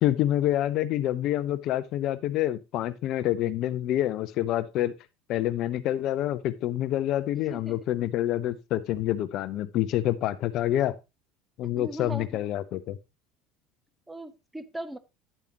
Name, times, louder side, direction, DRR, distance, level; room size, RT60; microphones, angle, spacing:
voice 1, 0.0-4.9 5.3-10.9 11.6-13.0, left 13 dB, 50° left, 0.5 m, -27 dB
voice 2, 11.7-12.4 14.1-15.0, right 1 dB, 10° right, 0.8 m, -39 dB
10.0 x 8.4 x 2.9 m
figure-of-eight pair, 70°, 0 cm